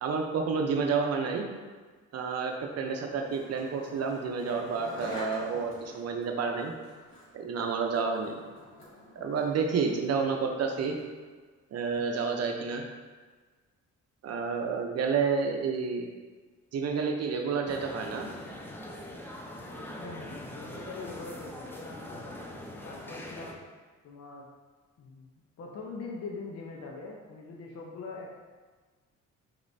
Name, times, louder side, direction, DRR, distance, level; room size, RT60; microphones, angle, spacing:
voice 1, 0.0-1.5 2.1-6.7 7.3-8.4 9.2-11.0 11.7-12.8 14.2-16.1 16.7-18.3, right 5 dB, 55° right, 3 dB, 0.7 m, -30 dB
Skateboard, 2.9-11.2, left 1 dB, 40° left, 1.5 m, -48 dB
sound 1, 17.7-23.5, left 1 dB, 5° left, 0.5 m, -42 dB
voice 2, 20.0-22.4 22.8-23.6 24.0-24.5 25.0-25.3 25.6-28.4, left 3 dB, 55° left, -1 dB, 0.7 m, -42 dB
5.1 x 3.0 x 2.6 m, 1.4 s
cardioid pair, 90°, 30 cm